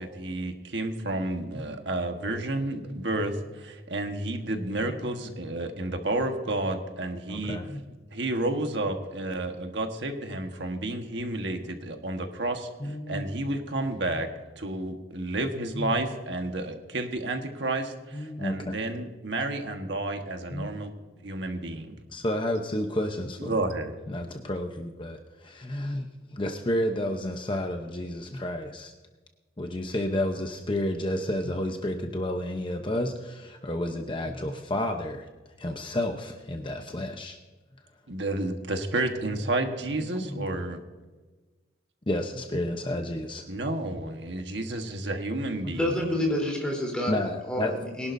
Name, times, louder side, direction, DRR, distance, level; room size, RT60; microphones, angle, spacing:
voice 1, 0.0-7.6 8.1-14.3 14.6-20.9 21.2-21.9 23.4-24.0 38.1-40.8 43.5-46.1, right 2 dB, 70° right, 5 dB, 1.4 m, -31 dB
voice 2, 7.3-7.8 12.8-13.2 15.8-15.9 18.1-18.7 20.5-20.7 22.1-23.7 24.1-28.9 29.6-35.3 35.6-37.4 40.2-40.5 42.1-43.5 45.6-45.7 47.1-47.7, left 1 dB, 25° left, 4 dB, 0.8 m, -31 dB
voice 3, 45.7-47.1 47.4-48.1, left 1 dB, 5° left, -1 dB, 3.5 m, -28 dB
22.5 x 11.5 x 2.7 m, 1.3 s
head